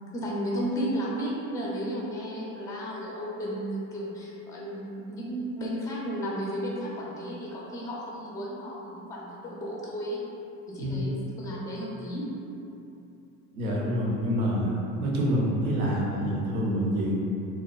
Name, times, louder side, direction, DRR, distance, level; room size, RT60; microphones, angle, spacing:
voice 1, 0.1-10.2 10.7-12.3, equal, 10° left, -4 dB, 0.3 m, -33 dB
voice 2, 13.5-14.7 15.0-17.1, equal, 90° right, -3 dB, 0.6 m, -27 dB
2.6 x 2.2 x 2.2 m, 2.8 s
hypercardioid pair, 75°, 42 cm